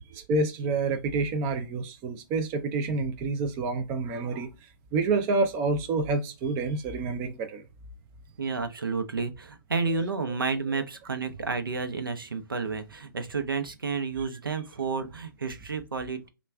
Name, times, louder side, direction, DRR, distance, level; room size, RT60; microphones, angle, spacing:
voice 1, 0.1-7.6 9.9-10.1, right 3 dB, 20° right, 0.4 m, -28 dB
voice 2, 8.4-16.3, right 4 dB, 70° right, 0.8 m, -31 dB
5.2 x 2.4 x 2.2 m
figure-of-eight pair, 135°, 12 cm